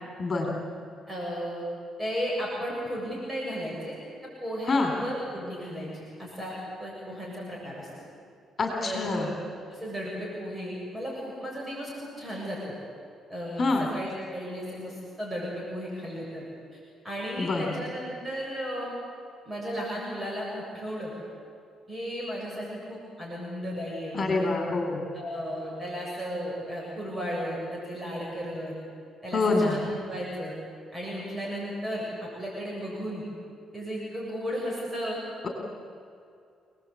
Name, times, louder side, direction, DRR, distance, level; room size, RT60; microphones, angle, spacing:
voice 1, 0.2-0.6 4.7-4.9 8.6-9.3 13.6-13.9 17.4-17.6 24.1-25.1 29.3-29.8 35.4-35.5, left 3 dB, 40° left, 2 dB, 3.9 m, -26 dB
voice 2, 1.1-1.6 2.0-4.0 4.4-7.9 8.8-9.3 9.7-12.7 13.3-16.4 16.7-16.8 17.0-18.9 19.4-21.1 21.9-24.5 25.1-28.8 29.2-30.5 30.9-33.3 33.7-35.2, equal, 20° right, -4 dB, 7.5 m, -34 dB
28.5 x 19.5 x 8.6 m, 2.4 s
cardioid pair, 90°, 0 cm